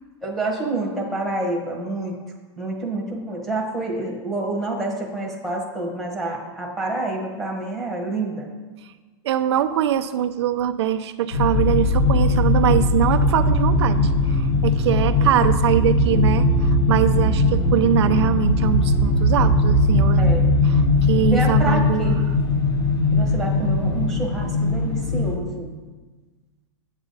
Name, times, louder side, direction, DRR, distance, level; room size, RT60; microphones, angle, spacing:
voice 1, 0.2-2.2 2.6-8.5 20.2-20.8 21.2-22.2 23.1-25.7, right 2 dB, ahead, -3 dB, 1.2 m, -28 dB
voice 2, 9.2-20.3 20.6-20.8 21.1-22.1, right 10 dB, 70° right, 8 dB, 0.4 m, -23 dB
sound 1, 11.3-25.4, left 2 dB, 65° left, 1.3 m, -19 dB
8.9 x 8.2 x 4.0 m, 1.3 s
supercardioid pair, 165°, 15 cm